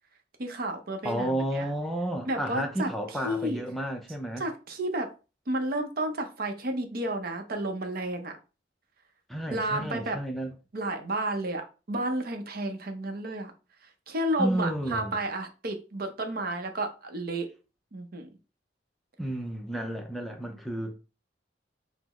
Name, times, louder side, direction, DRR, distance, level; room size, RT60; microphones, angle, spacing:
voice 1, 0.4-1.7 2.3-2.9 3.2-3.6 4.4-5.1 5.5-8.3 9.5-10.2 10.7-13.5 14.1-17.5 17.9-18.3, right 1 dB, 50° right, 0.7 m, -31 dB
voice 2, 1.0-4.4 9.3-10.5 14.4-15.1 19.2-20.9, right 1 dB, ahead, 0.4 m, -31 dB
5.6 x 2.0 x 3.0 m
head